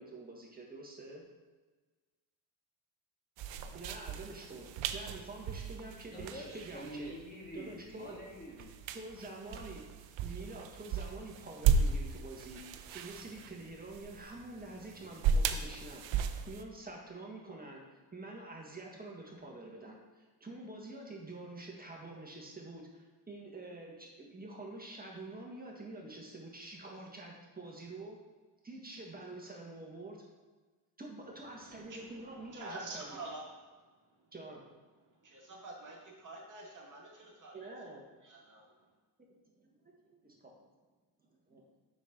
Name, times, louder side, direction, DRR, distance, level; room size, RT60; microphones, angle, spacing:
voice 1, 0.0-1.2 3.7-7.1 7.5-8.2 8.9-9.8 10.2-12.6 12.9-16.0 16.5-28.2 28.6-30.2 31.0-33.2 34.3-34.6 37.5-38.0 39.5-40.5 41.2-41.6, right 2 dB, 20° right, -1 dB, 1.8 m, -47 dB
sound 1, 3.4-16.6, right 6 dB, 70° right, 0.7 m, -36 dB
voice 2, 6.1-8.9, equal, 20° left, -2 dB, 1.8 m, -46 dB
voice 3, 31.5-33.5 34.1-34.2 35.2-37.7 38.2-38.7, right 2 dB, 40° right, -2 dB, 2.0 m, -47 dB
7.0 x 6.2 x 3.9 m, 1.3 s
cardioid pair, 80°, 46 cm